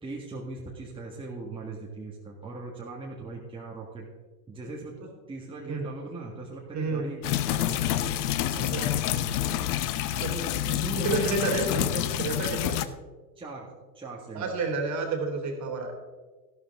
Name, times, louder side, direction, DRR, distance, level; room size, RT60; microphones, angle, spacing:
voice 1, 0.0-4.1 4.5-5.0 5.3-8.2 8.5-9.7 10.1-12.1 13.4-13.7 13.9-14.5, right 3 dB, 10° right, -3 dB, 1.8 m, -39 dB
voice 2, 6.7-7.1 8.6-8.9 10.2-10.3 11.0-11.9 12.2-12.8 14.3-15.9, right 3 dB, 35° right, 3 dB, 2.9 m, -30 dB
sound 1, 7.2-12.9, left 12 dB, 65° left, 0.8 m, -28 dB
13.0 x 12.0 x 3.6 m, 1.3 s
hypercardioid pair, 100°, 50 cm